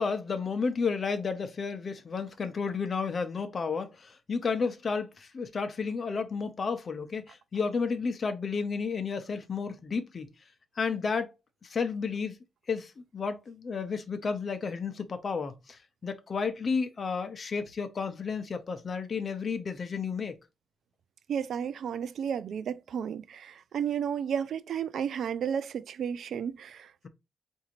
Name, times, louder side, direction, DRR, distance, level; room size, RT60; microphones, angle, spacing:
voice 1, 0.0-10.3 10.8-11.3 11.6-12.4 12.7-20.4, left 5 dB, 40° left, 0.7 m, -32 dB
voice 2, 21.3-27.1, right 8 dB, 75° right, 0.3 m, -33 dB
4.9 x 2.7 x 2.9 m
wide cardioid pair, 155°, 0 cm